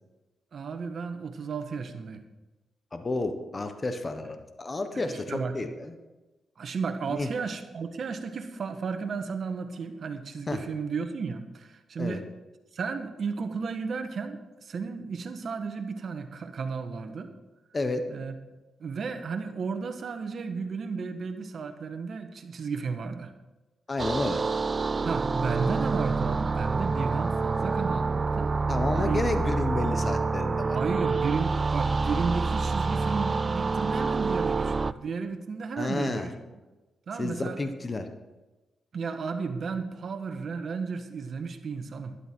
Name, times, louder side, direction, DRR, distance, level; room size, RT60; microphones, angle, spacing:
voice 1, 0.5-2.2 4.9-5.6 6.6-12.3 12.7-17.3 18.1-18.3 18.8-23.3 25.0-28.5 29.0-29.2 30.7-36.3 37.1-37.6 38.9-42.1, right 5 dB, 60° right, 7 dB, 1.3 m, -33 dB
voice 2, 2.9-5.9 7.1-7.3 10.5-10.6 12.0-12.2 17.7-18.0 23.9-24.4 28.7-30.8 35.8-36.3 37.2-38.1, left 2 dB, 30° left, 7 dB, 1.2 m, -31 dB
sound 1, 24.0-34.9, right 4 dB, 35° right, 0.3 m, -27 dB
12.0 x 11.0 x 4.6 m, 1.1 s
cardioid pair, 80°, 0 cm